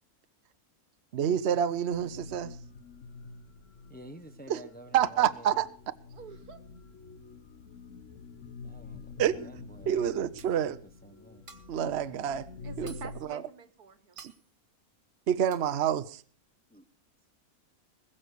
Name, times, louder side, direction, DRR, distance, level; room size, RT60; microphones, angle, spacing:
voice 1, 1.1-2.6 4.5-4.6 4.9-5.7 9.2-9.5 9.9-10.8 11.7-12.5 12.8-12.9 13.3-13.4 14.2-14.3 15.3-16.2, right 9 dB, 55° right, 0.9 m, -28 dB
sound 1, 1.9-13.2, left 4 dB, 60° left, 1.4 m, -47 dB
voice 2, 3.9-5.6 8.6-10.0 10.7-11.4 16.7-16.8, right 1 dB, 10° left, 0.8 m, -50 dB
voice 3, 6.1-6.6 12.6-14.2, right 5 dB, 85° right, 2.0 m, -47 dB
sound 2, 10.4-10.8 11.2-11.9 12.2-12.3 12.6-13.2 13.7-13.8 14.2-14.5 14.9-15.1 15.5-15.8, right 3 dB, 35° right, 2.0 m, -53 dB
20.5 x 7.3 x 6.6 m
omnidirectional pair, 1.6 m